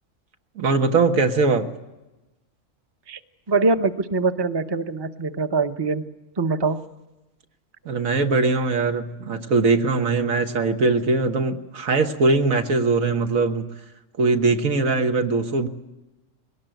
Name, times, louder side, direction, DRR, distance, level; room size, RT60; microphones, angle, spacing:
voice 1, 0.6-1.7 7.9-13.7 14.2-15.7, right 3 dB, 85° right, 6 dB, 1.8 m, -21 dB
voice 2, 3.5-6.0 6.4-6.8, right 3 dB, 25° right, 9 dB, 0.7 m, -23 dB
21.0 x 18.5 x 9.2 m, 1.0 s
omnidirectional pair, 1.4 m